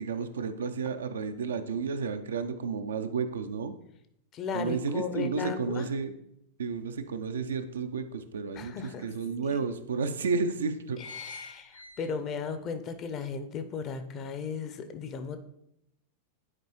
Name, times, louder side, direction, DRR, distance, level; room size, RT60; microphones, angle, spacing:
voice 1, 0.0-3.7 4.5-6.2 6.6-8.7 9.0-11.0, right 5 dB, 65° right, 8 dB, 0.5 m, -32 dB
voice 2, 4.3-5.9 8.5-9.1 9.4-9.7 11.0-15.4, left 5 dB, 30° left, 9 dB, 0.7 m, -36 dB
sound 1, 6.7-6.8 7.3-8.5 9.1-9.2 9.5-9.6 10.2-10.4 10.7-12.5 12.9-13.0, left 4 dB, 85° left, 0.5 m, -45 dB
9.7 x 4.6 x 3.1 m, 0.78 s
figure-of-eight pair, 90°, 0 cm